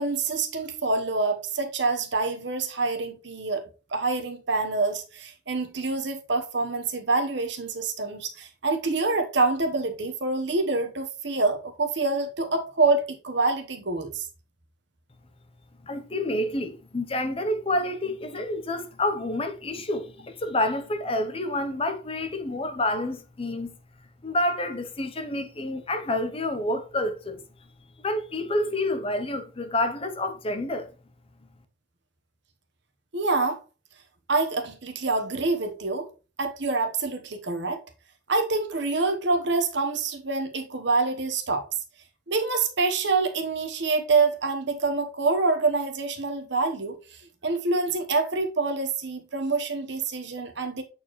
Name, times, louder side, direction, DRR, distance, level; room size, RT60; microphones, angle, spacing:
voice 1, 0.0-3.6 3.9-14.3 33.1-33.6 34.3-36.1 36.4-37.8 38.3-41.7 42.3-50.8, right 3 dB, 60° right, 1.1 m, -26 dB
voice 2, 15.9-23.7 24.2-27.4 28.0-30.9, left 1 dB, 30° left, 0.7 m, -28 dB
8.3 x 4.5 x 3.1 m
head